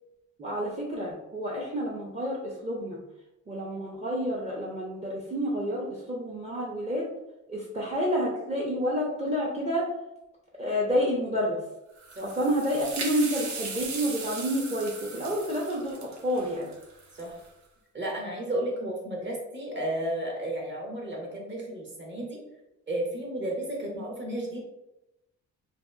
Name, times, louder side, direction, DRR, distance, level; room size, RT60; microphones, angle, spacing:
voice 1, 0.4-3.0 3.5-7.1 7.5-9.9 10.6-11.6 12.2-16.7, equal, 20° right, -4 dB, 0.5 m, -29 dB
sound 1, 12.0-17.5, right 4 dB, 65° right, 0.7 m, -38 dB
voice 2, 17.9-22.4 22.9-24.6, right 1 dB, 40° right, -2 dB, 0.9 m, -33 dB
2.7 x 2.3 x 2.2 m, 0.91 s
cardioid pair, 90°, 30 cm